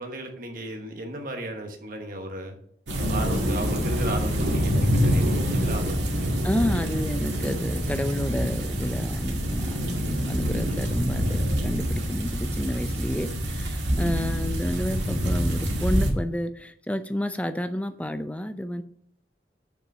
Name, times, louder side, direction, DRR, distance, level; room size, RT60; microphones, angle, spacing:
voice 1, 0.0-2.5 3.1-6.5 14.5-14.7, right 1 dB, 50° right, 4 dB, 1.2 m, -35 dB
sound 1, 2.9-16.1, equal, 90° right, 2.0 m, -26 dB
voice 2, 6.4-18.8, equal, 10° left, 10 dB, 0.5 m, -30 dB
6.9 x 5.8 x 6.6 m, 0.64 s
head